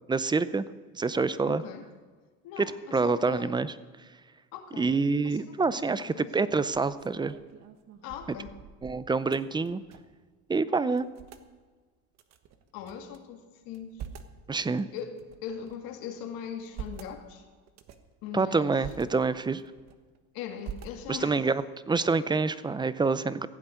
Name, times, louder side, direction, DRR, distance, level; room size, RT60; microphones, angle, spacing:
voice 1, 0.1-0.6 0.9-1.6 2.6-3.7 4.8-7.4 8.8-9.8 10.5-11.1 14.5-14.9 18.3-19.6 21.1-23.5, right 4 dB, 15° right, 15 dB, 0.5 m, -27 dB
voice 2, 1.5-1.8 2.4-2.7 3.0-3.5 4.5-5.0 5.2-6.3 8.0-8.5 10.7-10.9 12.7-14.0 14.9-15.2 15.4-17.4 18.2-18.8 20.3-21.4, left 8 dB, 75° left, 5 dB, 2.3 m, -40 dB
sound 1, 5.6-6.0 6.5-10.2 10.5-10.6 10.9-11.5 12.1-13.2 13.6-14.4 15.0-15.9 16.4-17.1 17.7-18.1 18.6-19.0 19.5-20.2 20.6-21.4, right 8 dB, 50° right, 1.3 m, -45 dB
15.5 x 8.0 x 9.1 m, 1.4 s
cardioid pair, 125°, 35 cm